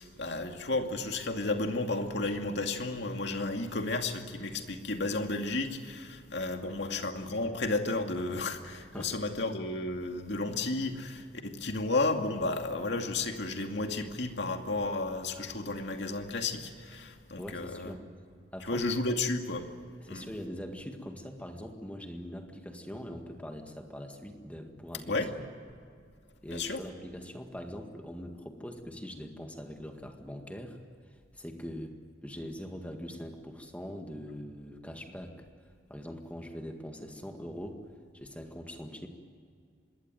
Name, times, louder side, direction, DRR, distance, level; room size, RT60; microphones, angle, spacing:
voice 1, 0.0-17.9 18.6-19.6 20.1-20.3 25.1-25.3 26.5-26.8, left 2 dB, 60° left, 4 dB, 2.4 m, -32 dB
voice 2, 17.4-18.1 18.5-19.2 20.0-25.1 26.4-30.8 31.1-32.0 32.2-35.5 35.9-37.8 38.1-39.1, equal, 5° left, 4 dB, 1.9 m, -42 dB
26.0 x 21.0 x 9.2 m, 2.2 s
head